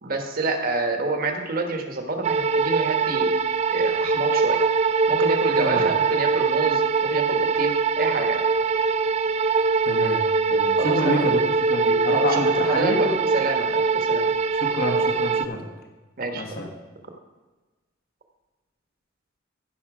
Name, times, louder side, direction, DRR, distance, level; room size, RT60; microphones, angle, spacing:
voice 1, 0.0-3.3 3.7-4.6 5.1-8.4 10.8-11.3 12.1-14.3 16.2-16.7, right 3 dB, 50° right, 4 dB, 1.3 m, -28 dB
sound 1, 2.2-15.5, right 4 dB, 35° right, 0.4 m, -22 dB
voice 2, 9.8-10.2 10.5-11.4 11.7-13.2 14.6-15.6 16.3-16.7, left 1 dB, 50° left, 2 dB, 1.4 m, -27 dB
15.0 x 5.9 x 4.9 m, 1.2 s
head